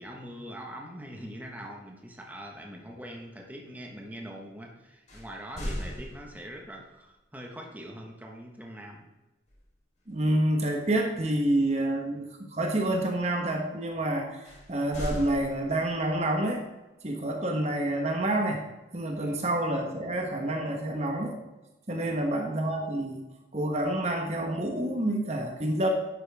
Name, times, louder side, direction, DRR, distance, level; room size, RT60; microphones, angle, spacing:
voice 1, 0.0-9.0 19.2-19.4 22.0-22.3, equal, 10° right, 0 dB, 1.3 m, -43 dB
sound 1, 5.1-6.7 9.5-9.8 10.2-10.4 14.4-16.1, equal, 40° left, 3.7 m, -38 dB
voice 2, 10.1-16.6 17.0-18.6 18.9-21.4 21.9-23.2 23.5-25.9, right 1 dB, 40° right, 2 dB, 1.2 m, -28 dB
11.0 x 9.0 x 3.5 m, 1.0 s
head